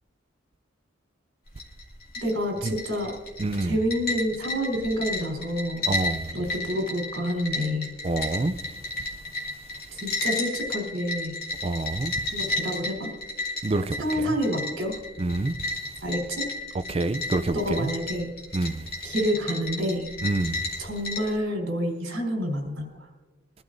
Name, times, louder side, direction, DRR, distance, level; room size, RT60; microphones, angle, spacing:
sound 1, 1.5-21.4, left 2 dB, 45° left, 2.5 m, -33 dB
voice 1, 2.2-3.2 3.6-5.9 6.3-7.9 9.9-11.3 12.3-13.1 14.0-15.0 16.0-16.5 17.5-18.3 19.0-20.1 20.8-23.1, equal, 60° right, 4.0 m, -28 dB
voice 2, 3.4-3.8 5.9-6.3 8.0-8.6 11.6-12.1 13.6-14.0 15.2-15.5 16.9-17.9 18.5-18.9 20.2-20.7, right 2 dB, 30° right, 0.4 m, -27 dB
23.0 x 12.5 x 2.6 m
head